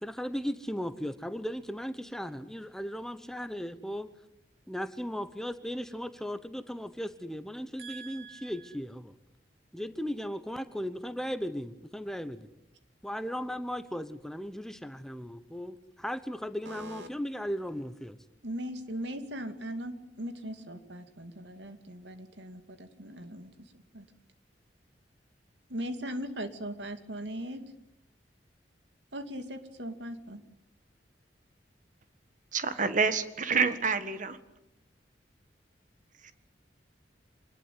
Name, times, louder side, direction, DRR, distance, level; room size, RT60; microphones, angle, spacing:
voice 1, 0.0-4.1 4.7-9.1 9.7-12.5 13.0-18.2, equal, 5° left, 11 dB, 1.0 m, -37 dB
voice 2, 7.8-8.7 16.7-17.1 18.4-24.1 25.7-27.6 29.1-30.4, equal, 80° right, 8 dB, 2.5 m, -39 dB
voice 3, 32.5-34.4 36.2-36.3, right 5 dB, 45° right, 11 dB, 1.7 m, -28 dB
25.5 x 20.0 x 9.3 m, 0.86 s
head